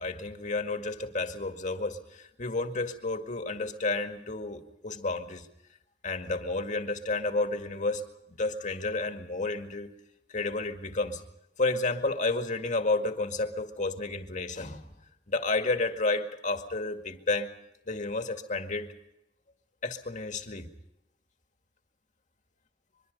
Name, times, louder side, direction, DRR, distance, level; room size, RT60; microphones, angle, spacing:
voice 1, 0.0-5.5 6.0-8.0 8.3-9.9 10.3-11.2 11.6-14.9 15.3-17.5 17.9-18.9 19.8-20.7, left 3 dB, 45° left, 6 dB, 2.0 m, -31 dB
24.0 x 23.0 x 5.4 m, 0.87 s
head